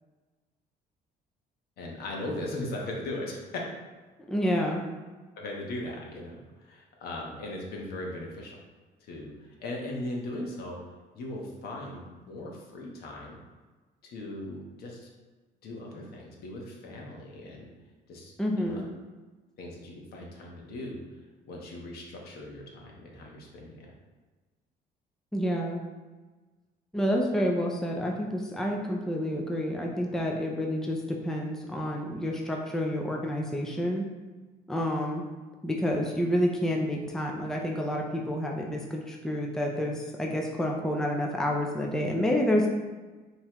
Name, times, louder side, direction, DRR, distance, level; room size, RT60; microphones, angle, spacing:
voice 1, 1.8-3.6 5.4-8.6 9.0-10.8 11.1-13.4 14.0-15.1 15.6-17.7 18.1-18.3 18.6-18.8 19.6-21.0 21.4-23.9, left 1 dB, 70° left, -1 dB, 1.2 m, -38 dB
voice 2, 4.3-4.8 18.4-18.9 25.3-25.8 26.9-34.1 34.7-35.2 35.6-42.7, equal, 5° left, 0 dB, 0.5 m, -29 dB
5.5 x 3.1 x 3.0 m, 1.3 s
cardioid pair, 110°, 17 cm